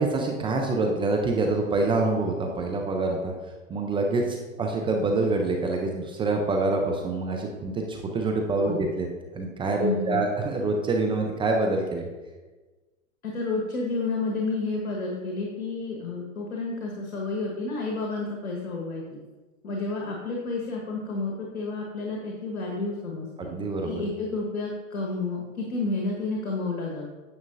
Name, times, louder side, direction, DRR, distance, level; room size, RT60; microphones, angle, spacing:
voice 1, 0.0-3.3 3.7-9.1 9.3-12.1 23.4-24.0, right 3 dB, 15° right, 2 dB, 0.5 m, -26 dB
voice 2, 9.8-10.2 13.2-19.2 19.6-23.5 23.8-27.1, left 3 dB, 90° left, -1 dB, 1.4 m, -30 dB
9.6 x 6.5 x 2.6 m, 1.2 s
hypercardioid pair, 120°, 41 cm